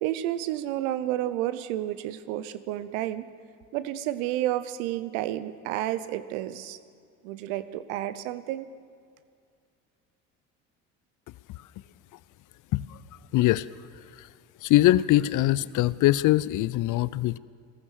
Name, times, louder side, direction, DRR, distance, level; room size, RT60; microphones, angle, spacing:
voice 1, 0.0-3.3 3.7-6.8 7.2-8.7, right 13 dB, 75° right, 14 dB, 0.9 m, -30 dB
voice 2, 13.3-13.7 14.2-14.3 14.6-17.4, left 15 dB, 50° left, 19 dB, 0.5 m, -22 dB
15.5 x 14.5 x 6.4 m, 2.2 s
hypercardioid pair, 65°, 40 cm